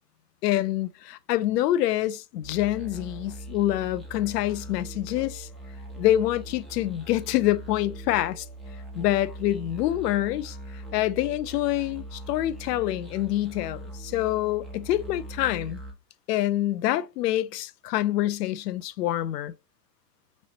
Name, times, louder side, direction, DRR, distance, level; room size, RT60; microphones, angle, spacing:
voice 1, 0.4-5.5 6.0-8.5 8.9-10.6 10.9-15.8 16.3-19.5, left 14 dB, 75° left, 0.6 m, -26 dB
sound 1, 2.4-15.9, right 1 dB, ahead, 1.3 m, -41 dB
5.3 x 3.1 x 2.9 m
hypercardioid pair, 115°, 48 cm